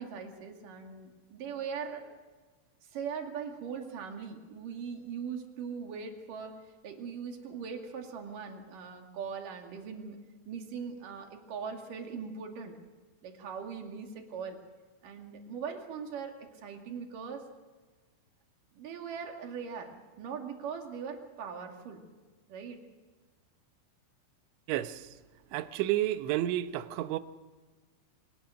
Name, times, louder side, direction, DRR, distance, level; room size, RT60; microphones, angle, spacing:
voice 1, 0.0-2.0 2.9-6.6 6.8-10.2 10.5-12.8 13.2-14.6 15.0-17.5 18.7-22.0 22.5-22.8, right 6 dB, 50° right, 3.4 m, -40 dB
voice 2, 24.7-25.0 25.5-27.2, right 14 dB, 80° right, 3.1 m, -30 dB
24.5 x 20.0 x 6.4 m
omnidirectional pair, 5.5 m